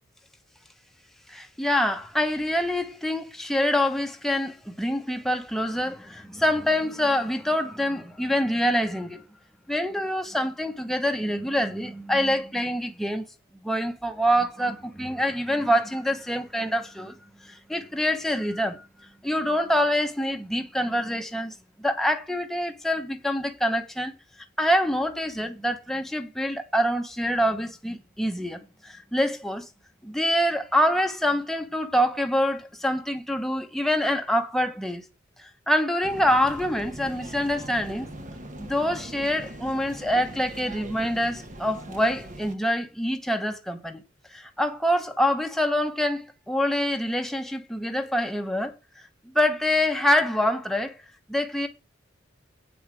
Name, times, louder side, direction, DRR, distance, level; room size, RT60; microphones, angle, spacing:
voice 1, 1.3-9.2 9.7-13.3 13.6-17.1 17.4-18.8 19.2-24.1 24.6-29.6 30.0-35.0 35.4-38.1 38.6-44.0 44.3-48.7 49.3-50.9 51.3-51.7, equal, ahead, 1.0 m, -25 dB
sound 1, 36.0-42.5, right 1 dB, 40° right, 1.2 m, -41 dB
8.7 x 5.3 x 6.3 m
head